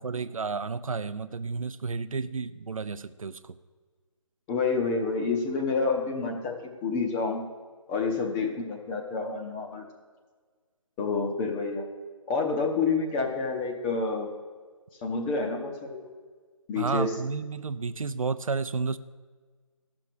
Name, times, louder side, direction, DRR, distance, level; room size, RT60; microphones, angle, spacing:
voice 1, 0.0-3.6 16.8-19.0, right 4 dB, 85° right, 13 dB, 0.6 m, -31 dB
voice 2, 4.5-6.6 6.8-7.5 7.9-9.8 11.0-11.8 12.3-14.3 15.0-16.0 16.7-17.1, left 4 dB, 10° left, 2 dB, 0.6 m, -28 dB
13.0 x 6.1 x 6.6 m, 1.5 s
figure-of-eight pair, 155°, 17 cm